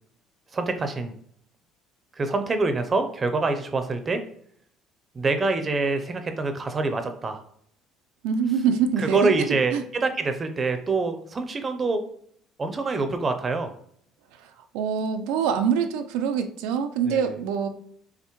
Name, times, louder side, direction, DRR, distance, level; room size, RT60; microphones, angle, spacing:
voice 1, 0.5-1.1 2.1-4.2 5.1-7.4 9.0-12.0 12.6-13.7 17.1-17.4, right 3 dB, 30° right, 7 dB, 0.6 m, -25 dB
voice 2, 8.2-9.8 14.4-17.7, right 7 dB, 85° right, 7 dB, 0.4 m, -25 dB
5.6 x 2.1 x 3.0 m, 0.65 s
cardioid pair, 105°, 0 cm